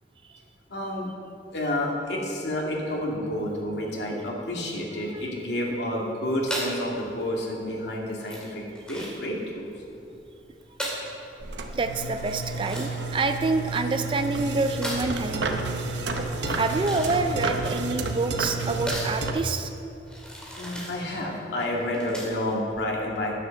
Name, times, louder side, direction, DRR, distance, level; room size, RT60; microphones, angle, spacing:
voice 1, 0.7-1.1 1.5-8.6 8.9-9.7 20.6-23.4, left 1 dB, 80° left, -2 dB, 2.0 m, -29 dB
sound 1, 6.5-22.5, equal, 5° left, 2.2 m, -38 dB
sound 2, 11.4-19.3, right 3 dB, 90° right, 0.8 m, -31 dB
voice 2, 11.7-15.6 16.5-19.7, right 3 dB, 30° right, 7 dB, 0.4 m, -27 dB
9.8 x 7.7 x 6.7 m, 2.7 s
head